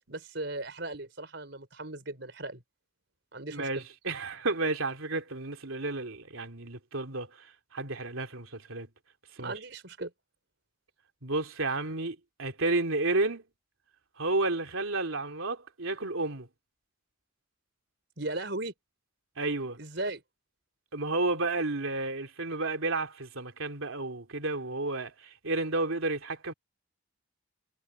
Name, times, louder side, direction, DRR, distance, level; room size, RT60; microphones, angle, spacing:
voice 1, 0.1-2.6 3.3-3.8 9.4-10.1 18.2-18.7 19.8-20.2, right 2 dB, 55° right, 5.1 m, -37 dB
voice 2, 3.5-8.9 9.4-9.5 11.2-13.4 14.2-16.5 19.4-19.8 20.9-26.5, right 2 dB, 80° right, 2.9 m, -31 dB
head